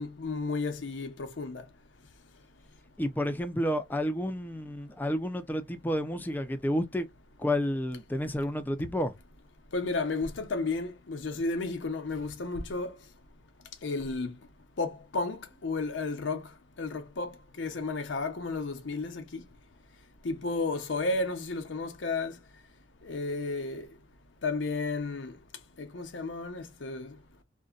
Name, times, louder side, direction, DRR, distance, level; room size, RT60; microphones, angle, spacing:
voice 1, 0.0-1.7 9.7-12.9 13.8-14.3 14.8-16.4 16.8-19.4 20.2-22.4 23.0-23.8 24.4-25.4 25.8-27.1, left 3 dB, 90° left, 0.7 m, -33 dB
voice 2, 3.0-7.1 7.4-9.1, equal, 10° left, 0.4 m, -30 dB
2.6 x 2.1 x 2.3 m
head